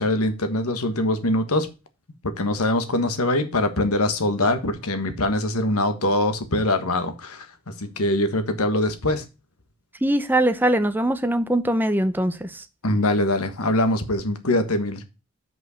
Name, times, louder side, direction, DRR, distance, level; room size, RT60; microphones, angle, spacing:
voice 1, 0.0-1.7 2.2-9.2 12.8-15.0, left 1 dB, 85° left, 1.4 m, -23 dB
voice 2, 10.0-12.6, right 1 dB, 10° right, 0.6 m, -22 dB
6.2 x 5.3 x 6.4 m
head